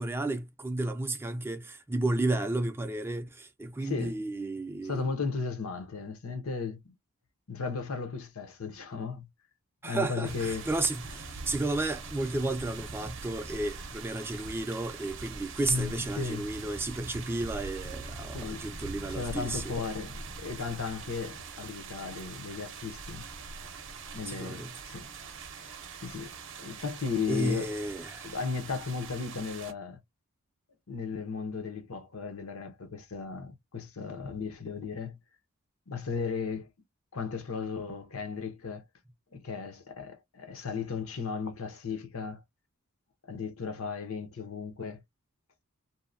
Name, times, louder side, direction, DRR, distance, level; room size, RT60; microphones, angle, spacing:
voice 1, 0.0-5.1 9.8-19.8 24.3-24.8 27.3-28.4, right 2 dB, 10° right, 0.3 m, -32 dB
voice 2, 3.8-4.2 4.8-6.8 7.5-9.3 9.8-10.7 15.7-16.5 18.3-18.7 19.1-23.2 24.1-25.1 25.6-25.8 26.0-27.7 28.2-30.0 30.9-35.2 35.9-36.7 37.1-38.8 39.3-42.4 43.3-45.0, left 5 dB, 75° left, 0.8 m, -35 dB
sound 1, 10.2-29.7, right 4 dB, 60° right, 0.6 m, -43 dB
2.8 x 2.1 x 2.4 m
head